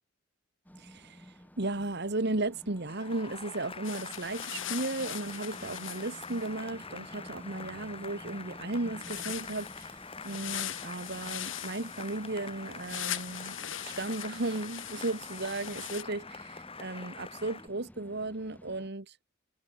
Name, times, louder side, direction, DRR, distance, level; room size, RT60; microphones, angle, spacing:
sound 1, 0.6-18.9, equal, 10° left, 4.3 m, -52 dB
voice 1, 0.8-1.2 1.6-10.0 10.2-13.6 13.8-19.1, right 2 dB, 55° right, 1.7 m, -35 dB
Cheering / Applause, 2.9-17.7, left 5 dB, 30° left, 3.5 m, -45 dB
sound 2, 3.8-6.5 9.0-16.0, left 11 dB, 75° left, 4.4 m, -40 dB
head